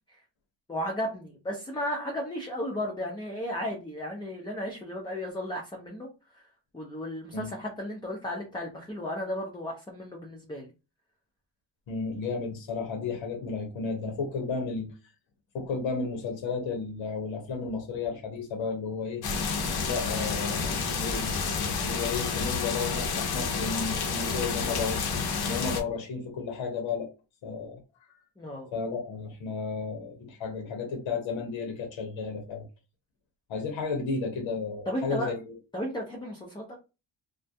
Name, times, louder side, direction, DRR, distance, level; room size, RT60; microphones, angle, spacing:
voice 1, 0.7-6.1 6.3-6.4 6.7-10.7 28.4-28.7 34.9-35.3 35.7-36.8, equal, 10° left, -1 dB, 0.5 m, -34 dB
voice 2, 11.9-14.9 15.5-19.2 19.8-21.4 21.8-25.0 25.4-27.1 27.4-27.8 28.1-28.2 28.7-32.6 33.5-35.6, left 4 dB, 85° left, 3 dB, 0.8 m, -33 dB
sound 1, 19.2-25.8, left 5 dB, 55° left, 0.6 m, -30 dB
2.2 x 2.1 x 2.6 m, 0.30 s
cardioid pair, 95°, 45 cm